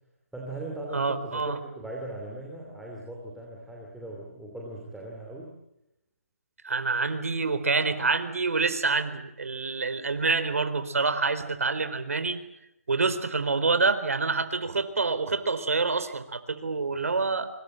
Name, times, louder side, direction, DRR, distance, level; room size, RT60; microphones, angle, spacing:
voice 1, 0.3-5.5, right 1 dB, ahead, -3 dB, 2.7 m, -39 dB
voice 2, 0.9-1.6 6.6-12.4 12.9-17.5, right 4 dB, 70° right, 11 dB, 3.9 m, -27 dB
26.5 x 25.0 x 7.8 m, 0.87 s
hypercardioid pair, 170°, 8 cm